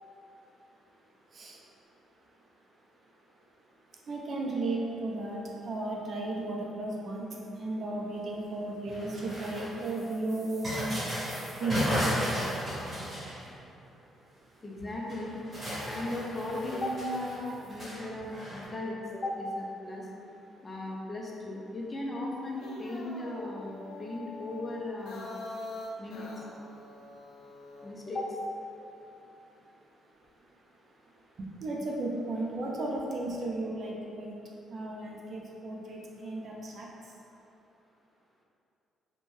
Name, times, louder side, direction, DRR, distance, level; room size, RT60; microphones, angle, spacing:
voice 1, 4.1-7.3 7.6-11.0 11.6-12.0 31.4-34.4 34.7-36.9, right 2 dB, 50° right, -2 dB, 0.5 m, -34 dB
sound 1, 8.9-13.7 14.8-14.9 15.1-18.6, equal, 30° right, 1.1 m, -35 dB
voice 2, 14.6-15.4 15.9-20.1 20.6-25.4 26.0-26.3 27.8-28.4 32.7-32.8, left 1 dB, 25° left, -2 dB, 0.5 m, -36 dB
sound 2, 22.4-27.9, left 2 dB, 80° left, 0.4 m, -44 dB
2.6 x 2.2 x 3.1 m, 2.7 s
cardioid pair, 90°, 0 cm